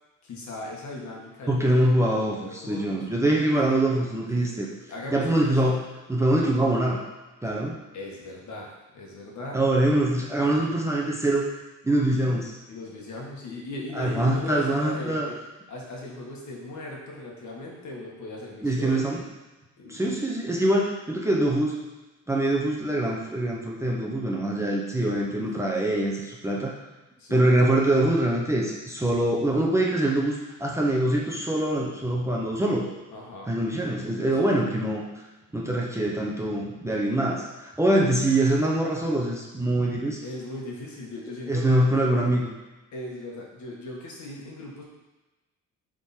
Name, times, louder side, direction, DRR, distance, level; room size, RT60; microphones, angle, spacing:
voice 1, 0.2-1.7 2.4-3.1 3.6-3.7 4.3-4.5 4.9-5.5 7.9-9.7 10.4-10.6 12.7-15.3 15.7-19.1 19.8-20.1 25.4-25.7 27.2-27.4 33.1-33.6 34.4-34.6 40.2-41.7 42.9-44.8, left 2 dB, 60° left, -2 dB, 1.7 m, -38 dB
voice 2, 1.5-4.7 5.1-5.8 6.1-7.0 7.4-7.7 9.5-11.4 11.8-12.6 13.9-15.3 18.6-19.2 19.9-21.8 22.3-26.7 27.3-32.9 33.5-35.0 35.5-40.2 41.5-42.5, right 1 dB, 10° right, -3 dB, 0.6 m, -24 dB
7.7 x 3.8 x 4.3 m, 1.1 s
cardioid pair, 170°, 32 cm